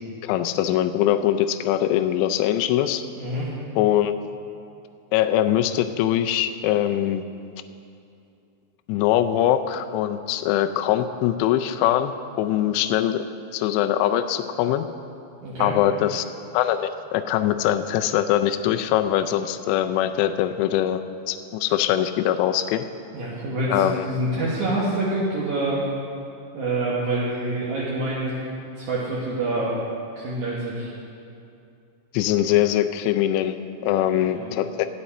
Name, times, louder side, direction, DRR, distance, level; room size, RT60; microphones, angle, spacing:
voice 1, 0.2-3.0 3.8-4.1 5.1-7.2 8.9-12.1 12.4-13.2 13.5-14.8 15.6-16.3 16.5-21.0 21.3-22.9 23.7-24.0 32.1-33.6 33.8-34.9, left 11 dB, 85° left, 8 dB, 2.6 m, -22 dB
voice 2, 3.2-3.5 15.4-15.7 23.1-25.8 26.5-28.4 28.8-29.8 30.2-30.9 33.9-34.5, right 2 dB, 65° right, -7 dB, 1.9 m, -26 dB
15.0 x 9.9 x 4.2 m, 2.6 s
omnidirectional pair, 5.3 m